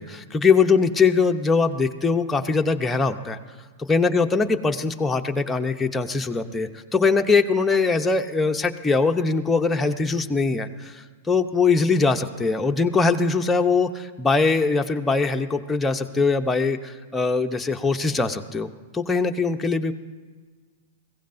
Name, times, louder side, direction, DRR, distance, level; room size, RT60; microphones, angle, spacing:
voice 1, 0.0-3.4 3.9-19.9, left 4 dB, 10° left, 4 dB, 0.8 m, -22 dB
21.0 x 16.0 x 2.6 m, 1.5 s
hypercardioid pair, 115°, 0 cm